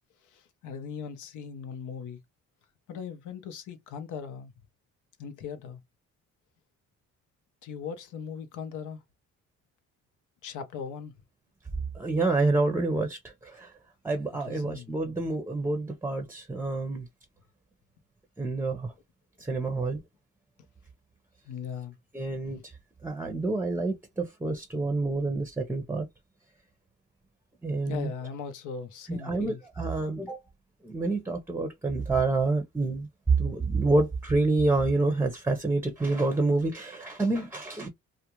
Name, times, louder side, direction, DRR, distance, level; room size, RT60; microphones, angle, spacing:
voice 1, 0.3-2.2 2.9-4.5 5.2-5.8 7.6-9.0 10.4-11.1 14.5-14.9 19.9-20.0 21.5-22.0 22.5-22.6 27.9-29.6, left 6 dB, 80° left, 0.7 m, -39 dB
voice 2, 11.9-13.7 14.0-17.1 18.4-18.9 19.4-20.0 22.1-22.7 23.0-26.1 27.6-28.1 29.1-30.4 30.8-33.1 33.4-37.9, right 2 dB, 10° right, 0.6 m, -28 dB
2.4 x 2.1 x 2.9 m
cardioid pair, 90°, 30 cm